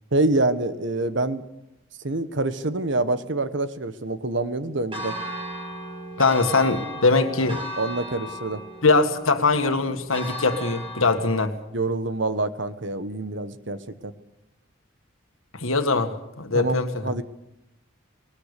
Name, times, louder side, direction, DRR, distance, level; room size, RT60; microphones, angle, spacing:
voice 1, 0.1-1.4 2.0-5.1 7.8-8.6 11.7-14.1 16.5-17.2, right 2 dB, 60° right, 12 dB, 1.2 m, -26 dB
Church bell, 4.9-11.4, equal, 25° right, 5.6 m, -36 dB
voice 2, 6.2-7.6 8.8-11.6 15.5-17.1, left 3 dB, 85° left, 7 dB, 1.9 m, -22 dB
20.0 x 20.0 x 6.8 m, 0.87 s
head